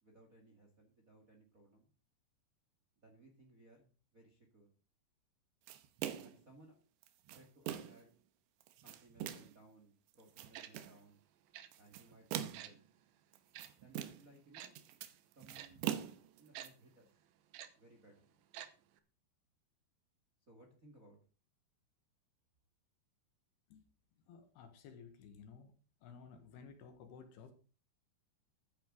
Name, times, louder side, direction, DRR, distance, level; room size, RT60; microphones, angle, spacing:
voice 1, 0.0-1.9 3.0-4.7 6.2-6.8 7.3-8.1 8.8-11.2 11.7-12.8 13.8-14.8 15.3-15.9 16.4-17.2 17.7-18.3 20.5-21.2, right 2 dB, 30° right, 2 dB, 1.6 m, -63 dB
sound 1, 5.7-6.4 7.0-8.1 8.6-9.6 10.1-11.0 11.7-12.8 13.3-14.4 14.6-16.7, right 11 dB, 85° right, 3.2 m, -43 dB
Tick-tock, 10.5-10.7 11.5-11.7 12.5-12.7 13.5-13.7 14.5-14.7 15.5-15.7 16.5-16.7 17.5-17.7 18.5-18.7 19.0-19.1, right 11 dB, 70° right, 2.5 m, -48 dB
voice 2, 24.3-25.7 26.0-27.5, left 6 dB, 70° left, 8 dB, 3.4 m, -55 dB
13.5 x 9.8 x 3.9 m, 0.35 s
omnidirectional pair, 4.9 m